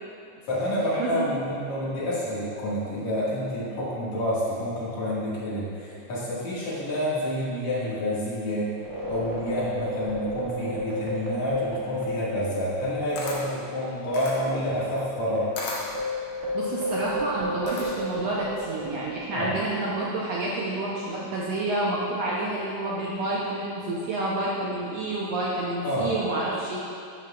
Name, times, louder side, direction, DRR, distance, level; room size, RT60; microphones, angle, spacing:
voice 1, 0.5-8.7 9.1-15.5 19.3-19.5 25.8-26.1, equal, 65° left, -8 dB, 3.0 m, -28 dB
sound 1, 8.8-13.6 13.9-14.0 14.6-19.4, equal, 45° right, 0.9 m, -32 dB
Camera, 12.8-18.2, left 2 dB, 85° left, 1.1 m, -38 dB
voice 2, 16.3-26.8, right 2 dB, 75° right, -6 dB, 1.6 m, -29 dB
12.0 x 5.8 x 2.3 m, 2.4 s
omnidirectional pair, 3.6 m